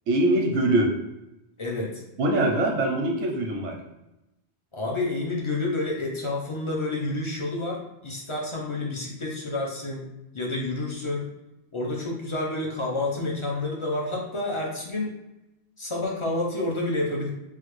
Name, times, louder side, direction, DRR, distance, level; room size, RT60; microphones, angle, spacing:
voice 1, 0.1-0.9 2.2-3.8, right 1 dB, 85° right, 1 dB, 0.9 m, -23 dB
voice 2, 1.6-2.0 4.7-10.1 10.3-11.3 11.7-15.1 15.8-17.3, left 2 dB, 40° left, -2 dB, 0.4 m, -29 dB
3.2 x 2.3 x 3.0 m, 0.96 s
omnidirectional pair, 1.1 m